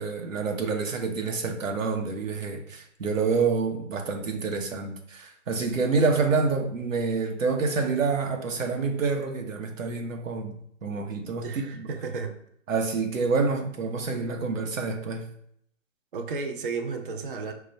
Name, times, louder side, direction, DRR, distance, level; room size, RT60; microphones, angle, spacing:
voice 1, 0.0-10.6 10.8-11.9 12.7-15.3, right 4 dB, 80° right, 3 dB, 1.0 m, -27 dB
voice 2, 11.4-12.4 16.1-17.5, right 4 dB, 45° right, 5 dB, 0.5 m, -33 dB
4.7 x 2.2 x 4.0 m, 0.67 s
hypercardioid pair, 155°, 39 cm